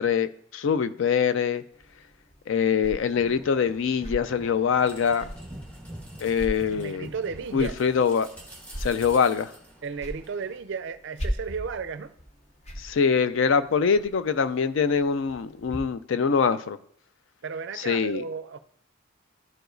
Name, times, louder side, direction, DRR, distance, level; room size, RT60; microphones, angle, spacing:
voice 1, 0.0-1.6 2.5-5.2 6.2-7.1 7.5-8.3 8.8-9.5 12.8-16.8 17.8-18.2, left 6 dB, 60° left, 0.4 m, -24 dB
sound 1, 1.7-15.8, equal, 30° left, 0.7 m, -41 dB
sound 2, 3.1-10.6, right 1 dB, 5° left, 1.1 m, -46 dB
voice 2, 6.7-7.8 9.8-12.1 17.4-18.6, right 5 dB, 55° right, 0.4 m, -34 dB
12.0 x 4.8 x 2.6 m
head